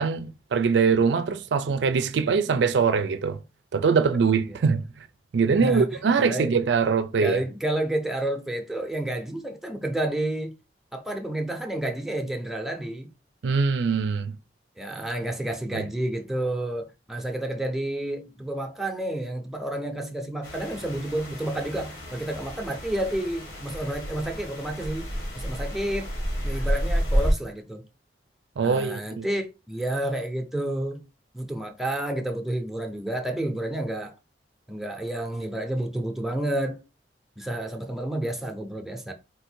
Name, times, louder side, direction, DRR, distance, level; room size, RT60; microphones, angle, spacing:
voice 1, 0.0-3.4 3.7-4.8 5.3-7.4 13.4-14.4 15.7-15.8 28.6-29.3, right 5 dB, 85° right, 0.4 m, -23 dB
voice 2, 6.2-6.5 7.2-10.5 10.9-13.1 14.8-25.1 25.3-26.1 26.4-27.8 28.6-31.1 31.3-34.1 34.7-36.8 37.4-39.1, right 1 dB, ahead, 0.6 m, -30 dB
sound 1, 20.4-27.3, equal, 85° left, 2.0 m, -30 dB
4.1 x 2.6 x 4.3 m
head